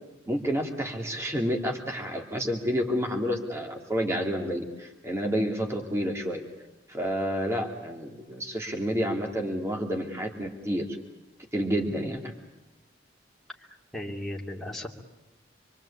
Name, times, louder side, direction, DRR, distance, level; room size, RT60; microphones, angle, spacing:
voice 1, 0.3-6.4 6.9-11.0 11.5-12.3, equal, 15° right, 1 dB, 2.6 m, -29 dB
voice 2, 13.7-14.9, left 1 dB, ahead, -3 dB, 2.8 m, -36 dB
26.5 x 24.0 x 8.6 m, 0.98 s
head